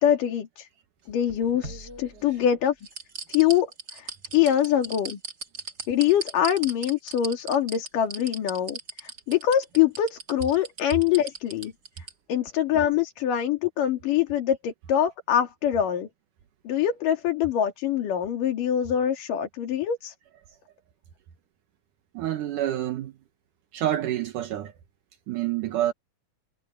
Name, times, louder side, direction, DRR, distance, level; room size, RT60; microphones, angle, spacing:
voice 1, 0.0-0.7 1.1-2.8 3.3-5.2 5.9-11.7 12.3-16.1 16.7-20.1, left 10 dB, 85° left, 4.1 m, -24 dB
sound 1, 1.1-2.4 2.8-12.1 12.5-12.6, right 4 dB, 30° right, 3.1 m, -37 dB
voice 2, 22.1-23.1 23.7-24.7 25.3-25.9, right 13 dB, 75° right, 2.7 m, -27 dB
omnidirectional pair, 3.7 m